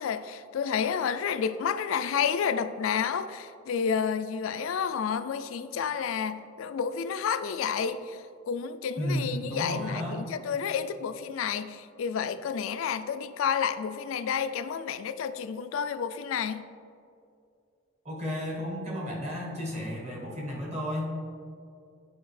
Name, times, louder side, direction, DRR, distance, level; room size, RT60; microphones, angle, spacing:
voice 1, 0.0-8.2 8.5-16.7, left 7 dB, 70° left, 11 dB, 0.3 m, -30 dB
voice 2, 9.0-10.2 18.0-21.1, equal, 30° right, -3 dB, 1.2 m, -33 dB
8.9 x 4.8 x 3.2 m, 2.4 s
head